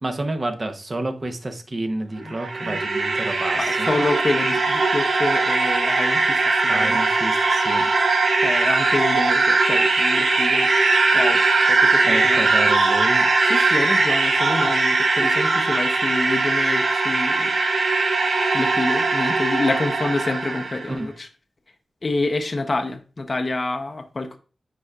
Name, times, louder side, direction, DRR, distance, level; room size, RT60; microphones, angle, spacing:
voice 1, 0.0-3.9 6.7-7.9 12.1-13.3 20.9-21.1, right 2 dB, 30° right, 6 dB, 0.7 m, -29 dB
voice 2, 2.2-2.8 3.6-7.0 8.4-10.7 11.1-12.5 13.4-17.5 18.5-21.3 22.0-24.4, left 2 dB, 30° left, 5 dB, 0.5 m, -27 dB
sound 1, 2.2-20.9, right 3 dB, 60° right, 0.9 m, -20 dB
8.9 x 4.8 x 2.3 m, 0.37 s
wide cardioid pair, 165°, 0 cm